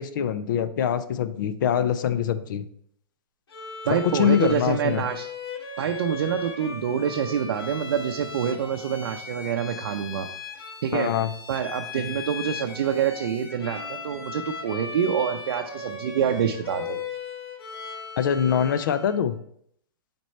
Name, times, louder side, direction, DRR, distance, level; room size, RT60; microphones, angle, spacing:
voice 1, 0.0-2.7 3.9-5.0 10.9-11.3 18.2-19.4, left 8 dB, 55° left, 13 dB, 0.5 m, -24 dB
Bowed string instrument, 3.5-19.3, left 4 dB, 90° left, 1.3 m, -38 dB
voice 2, 3.9-5.3 5.8-10.3 10.8-11.1 11.5-17.0, right 8 dB, 65° right, 4 dB, 0.6 m, -26 dB
6.2 x 4.4 x 4.3 m, 0.69 s
hypercardioid pair, 155°, 13 cm